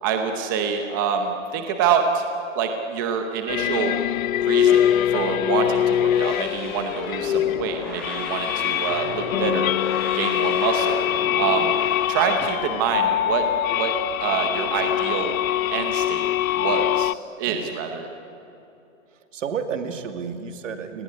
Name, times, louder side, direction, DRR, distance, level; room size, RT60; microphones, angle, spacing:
voice 1, 0.0-2.2 2.5-3.9 4.4-4.8 5.1-9.7 10.1-11.0 11.3-11.8 12.1-13.5 13.7-13.9 14.2-15.3 15.7-16.3 16.5-17.1 17.4-18.1, right 7 dB, 15° right, 5 dB, 0.8 m, -26 dB
sound 1, 3.5-17.1, left 11 dB, 85° left, 0.6 m, -23 dB
sound 2, 6.0-12.1, left 1 dB, ahead, 5.0 m, -37 dB
voice 2, 17.4-17.7 19.1-21.0, right 6 dB, 70° right, 7 dB, 2.5 m, -31 dB
30.0 x 19.5 x 9.9 m, 2.9 s
hypercardioid pair, 175°, 40 cm